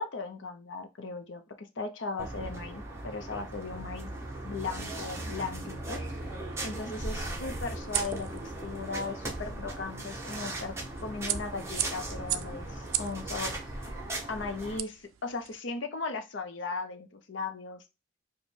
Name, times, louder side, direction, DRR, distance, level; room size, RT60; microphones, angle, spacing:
voice 1, 0.0-4.1 4.4-13.9 14.3-17.8, left 4 dB, 65° left, 7 dB, 0.6 m, -38 dB
sound 1, 2.2-14.8, right 2 dB, 15° right, 0.7 m, -38 dB
sound 2, 2.3-9.8 13.2-13.3 14.4-14.5, equal, 5° left, 1.0 m, -59 dB
sound 3, 5.7-15.6, right 13 dB, 80° right, 0.3 m, -40 dB
5.1 x 2.2 x 3.2 m, 0.27 s
head